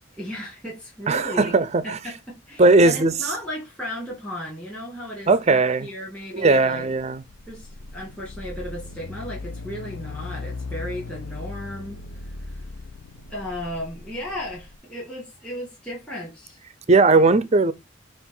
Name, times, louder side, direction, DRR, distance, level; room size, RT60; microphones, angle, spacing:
voice 1, 0.2-1.5 1.8-6.8 7.5-12.6 13.3-16.6, left 1 dB, 5° left, 2.2 m, -35 dB
voice 2, 1.1-2.0 2.6-3.1 5.3-5.9 6.3-7.2 16.9-17.7, right 3 dB, 35° right, 0.5 m, -18 dB
sound 1, 6.9-14.8, left 3 dB, 80° left, 0.6 m, -37 dB
6.9 x 2.5 x 5.5 m
head